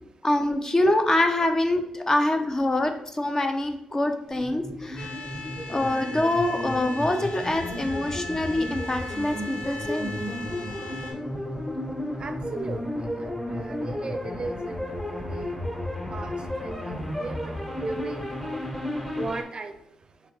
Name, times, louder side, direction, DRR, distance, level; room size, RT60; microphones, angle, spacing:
voice 1, 0.0-5.2 5.7-10.1, left 1 dB, 25° left, 5 dB, 0.7 m, -25 dB
sound 1, 4.3-19.4, left 1 dB, 10° left, 1.3 m, -33 dB
sound 2, 5.0-11.1, left 1 dB, 75° left, 1.1 m, -38 dB
voice 2, 12.2-12.8 13.5-15.5 16.1-17.5 17.8-18.5 19.2-19.7, right 3 dB, 45° right, 7 dB, 0.5 m, -36 dB
4.3 x 3.4 x 3.4 m, 0.74 s
supercardioid pair, 55°, 2 cm